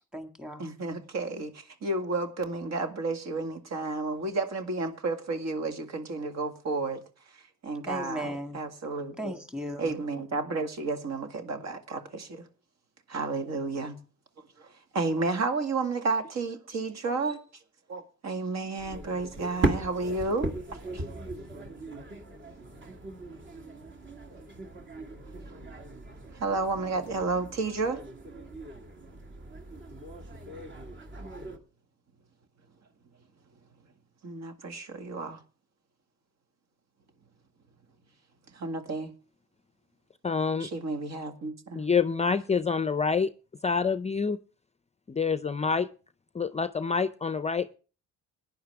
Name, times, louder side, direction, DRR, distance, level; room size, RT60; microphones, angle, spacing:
voice 1, 0.0-0.7 7.9-8.6 9.2-9.9, equal, 5° right, 1.9 m, -37 dB
voice 2, 0.6-7.0 7.6-9.3 9.8-12.5 13.1-14.0 14.6-17.4 17.9-21.0 26.3-28.0 34.2-35.4 38.5-39.1 40.6-41.8, right 3 dB, 60° right, 2.1 m, -32 dB
sound 1, 18.8-31.6, right 2 dB, 40° right, 2.2 m, -38 dB
voice 3, 40.2-40.7 41.8-43.3 43.6-44.4 45.1-45.9 46.3-47.7, left 5 dB, 20° left, 0.5 m, -27 dB
17.0 x 10.5 x 3.5 m
cardioid pair, 90°, 30 cm